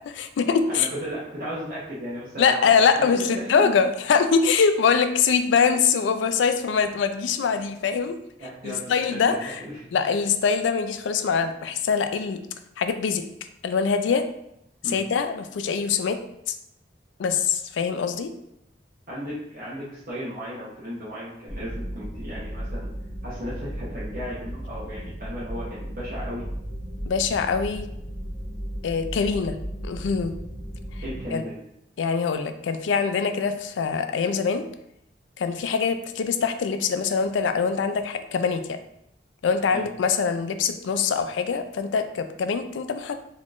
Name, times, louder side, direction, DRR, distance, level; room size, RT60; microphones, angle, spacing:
voice 1, 0.1-0.9 2.4-8.2 8.6-9.6 9.9-12.4 12.8-13.2 13.6-14.3 14.8-16.2 16.5-16.6 17.2-18.3 27.0-27.9 28.8-29.6 29.8-30.3 31.3-31.4 32.0-34.7 35.4-38.6 39.4-43.1, left 6 dB, 85° left, 8 dB, 0.3 m, -23 dB
voice 2, 0.7-3.7 8.4-9.8 14.8-15.0 19.1-22.9 23.2-26.4 31.0-31.6 39.7-39.8, equal, 50° right, -9 dB, 0.8 m, -35 dB
sound 1, 21.5-31.2, equal, 10° right, 0.9 m, -35 dB
4.0 x 3.0 x 2.4 m, 0.79 s
head